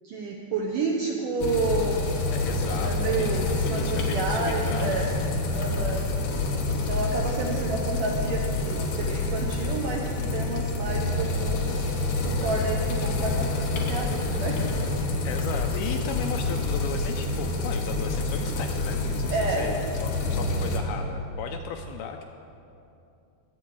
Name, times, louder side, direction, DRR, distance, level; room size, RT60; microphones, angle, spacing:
voice 1, 0.0-2.1 2.8-5.1 5.5-6.1 6.7-11.8 12.2-14.8 19.3-19.7 20.3-20.7, right 3 dB, 75° right, -1 dB, 1.9 m, -30 dB
sound 1, 1.4-20.8, left 2 dB, 65° left, 2.3 m, -27 dB
voice 2, 2.3-5.1 5.7-6.0 15.2-22.2, left 7 dB, 80° left, 5 dB, 2.3 m, -36 dB
21.0 x 8.4 x 4.7 m, 2.7 s
omnidirectional pair, 4.9 m